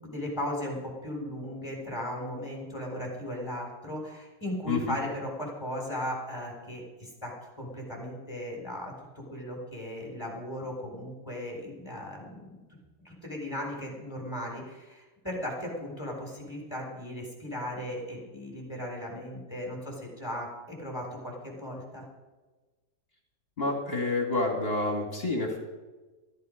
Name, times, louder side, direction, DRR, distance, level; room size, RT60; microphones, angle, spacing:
voice 1, 0.0-12.5 13.0-22.1, left 1 dB, 15° left, -2 dB, 3.9 m, -37 dB
voice 2, 23.6-25.6, left 2 dB, 35° left, 0 dB, 2.8 m, -28 dB
14.0 x 14.0 x 5.2 m, 1.2 s
omnidirectional pair, 1.8 m